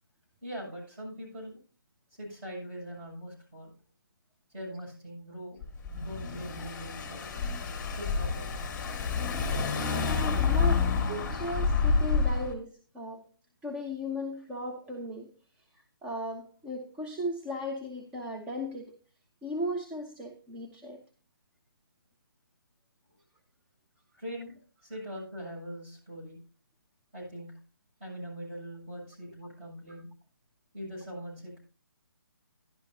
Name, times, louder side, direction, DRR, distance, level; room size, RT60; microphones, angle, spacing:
voice 1, 0.4-1.6 2.1-3.7 4.5-5.6 5.9-7.2 7.9-8.6 24.2-26.4 27.1-27.5 28.0-30.1 30.7-31.6, equal, 30° right, -3 dB, 7.2 m, -42 dB
Car / Engine, 5.6-12.5, left 5 dB, 10° left, 1.8 m, -29 dB
voice 2, 10.0-13.2 13.6-15.3 15.7-19.0 19.4-21.0, equal, 10° right, 1 dB, 0.6 m, -36 dB
12.0 x 11.5 x 2.7 m, 0.35 s
figure-of-eight pair, 150°, 12 cm